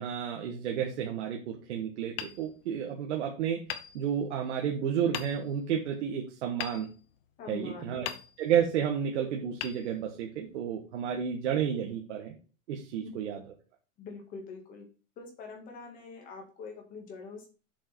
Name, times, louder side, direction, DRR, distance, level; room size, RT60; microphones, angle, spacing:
voice 1, 0.0-3.6 3.9-6.9 7.5-8.1 8.4-12.3 12.7-13.4, right 8 dB, 65° right, 1 dB, 1.6 m, -31 dB
Hammer, 2.1-3.2 3.7-4.6 5.1-5.7 6.6-7.6 8.0-8.8 9.6-10.5, left 10 dB, 50° left, 0.9 m, -41 dB
voice 2, 7.4-8.2 13.0-13.1 14.0-14.9 15.2-17.5, left 4 dB, 20° left, 2 dB, 2.0 m, -44 dB
7.5 x 5.0 x 4.5 m, 0.35 s
supercardioid pair, 175°, 38 cm